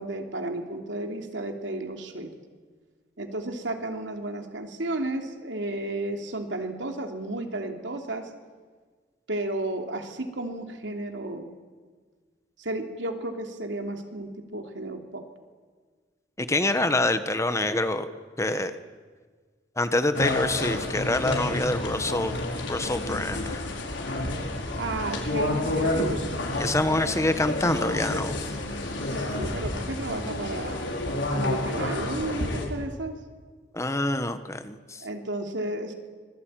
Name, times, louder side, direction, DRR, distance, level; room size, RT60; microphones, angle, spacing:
voice 1, 0.0-2.3 3.2-8.3 9.3-11.5 12.6-15.2 24.7-26.1 29.1-30.8 31.3-33.2 35.0-35.9, right 2 dB, 85° right, 4 dB, 3.0 m, -33 dB
voice 2, 16.4-18.1 18.4-18.7 19.8-22.3 22.7-23.6 26.6-28.4 33.7-35.0, left 2 dB, 15° left, 10 dB, 1.2 m, -26 dB
sound 1, 20.1-32.6, left 1 dB, 85° left, 4.9 m, -30 dB
25.5 x 20.0 x 9.1 m, 1.5 s
head